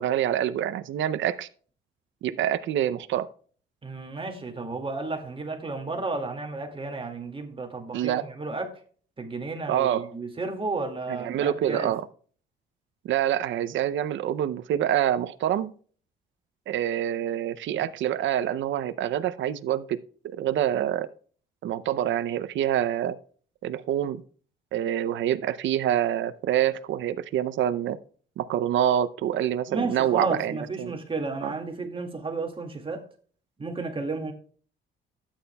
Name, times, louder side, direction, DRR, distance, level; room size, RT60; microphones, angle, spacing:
voice 1, 0.0-1.5 2.2-3.3 7.9-8.2 9.7-10.1 11.1-12.0 13.0-15.7 16.7-20.0 20.2-21.1 21.6-23.2 23.6-24.2 24.7-28.0 28.4-30.9 31.4-31.5, right 11 dB, 70° right, 0.6 m, -26 dB
voice 2, 3.8-8.8 9.2-11.9 17.7-17.9 29.7-33.0 33.6-34.3, right 3 dB, 25° right, 2.1 m, -32 dB
12.5 x 8.9 x 2.3 m
cardioid pair, 90°, 20 cm